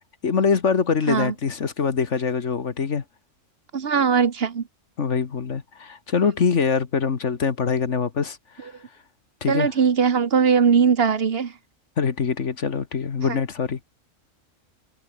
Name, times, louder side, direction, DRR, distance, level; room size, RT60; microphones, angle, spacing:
voice 1, 0.2-3.0 5.0-8.7 9.4-9.7 12.0-13.8, left 6 dB, 65° left, 1.8 m, -24 dB
voice 2, 3.7-4.7 9.5-11.5 13.3-13.4, right 6 dB, 50° right, 1.3 m, -20 dB
omnidirectional pair, 1.3 m